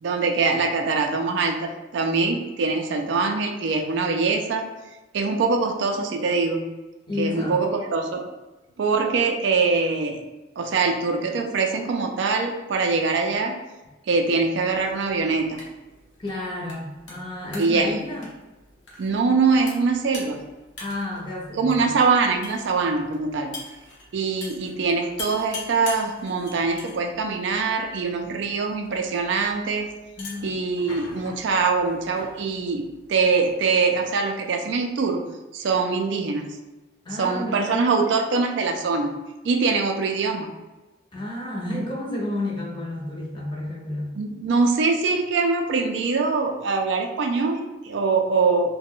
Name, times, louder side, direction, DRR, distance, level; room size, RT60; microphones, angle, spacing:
voice 1, 0.0-4.7 5.1-6.6 7.2-8.2 8.8-10.2 10.6-13.6 14.1-15.6 17.6-18.0 19.0-20.4 21.6-23.5 24.1-29.9 30.4-35.2 35.5-36.6 37.2-39.2 39.4-40.5 44.2-48.8, right 4 dB, 60° right, 3 dB, 0.3 m, -23 dB
voice 2, 7.1-7.6 16.2-18.3 20.8-21.9 30.2-30.6 37.0-37.9 41.1-44.2, left 1 dB, 25° left, -3 dB, 0.6 m, -31 dB
sound 1, 14.7-33.5, left 3 dB, 65° left, 0.7 m, -44 dB
2.4 x 2.1 x 3.5 m, 1.1 s
head